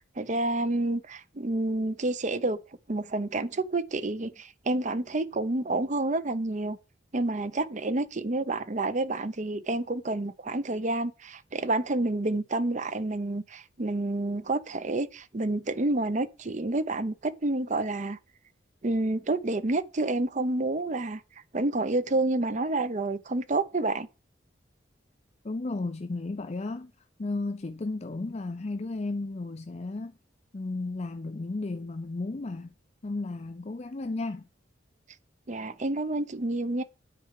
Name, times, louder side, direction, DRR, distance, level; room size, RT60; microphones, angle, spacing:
voice 1, 0.2-2.6 2.9-6.8 7.1-18.2 18.8-21.2 21.5-24.1 35.5-36.8, right 2 dB, 40° right, 0.7 m, -29 dB
voice 2, 25.4-26.9 27.2-30.1 30.5-32.7 33.0-34.5, left 2 dB, 35° left, 0.5 m, -34 dB
10.0 x 4.6 x 7.5 m
head